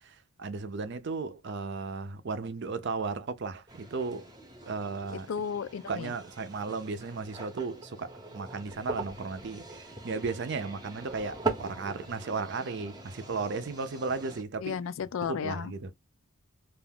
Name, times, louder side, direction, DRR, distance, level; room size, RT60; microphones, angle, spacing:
voice 1, 0.0-4.3 4.7-5.3 5.9-14.8 15.2-15.9, right 4 dB, 55° right, 0.5 m, -35 dB
sound 1, 3.7-14.4, right 3 dB, 20° right, 0.6 m, -41 dB
voice 2, 5.3-6.1 14.6-15.7, left 7 dB, 75° left, 0.3 m, -33 dB
2.4 x 2.3 x 3.4 m
head